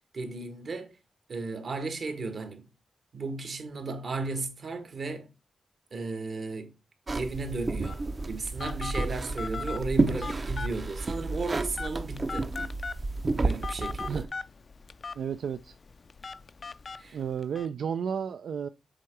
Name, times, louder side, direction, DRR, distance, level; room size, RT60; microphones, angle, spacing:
voice 1, 0.1-0.9 1.3-2.7 3.1-5.3 5.9-6.7 7.1-12.5 13.4-14.2 17.0-17.2, right 3 dB, 60° right, 1.5 m, -34 dB
sound 1, 7.1-14.3, right 3 dB, 40° right, 0.6 m, -31 dB
Telephone, 7.8-17.7, left 4 dB, 45° left, 0.4 m, -40 dB
voice 2, 15.1-15.7 17.1-18.7, right 7 dB, 80° right, 0.3 m, -32 dB
7.5 x 3.7 x 4.6 m
cardioid pair, 90°, 0 cm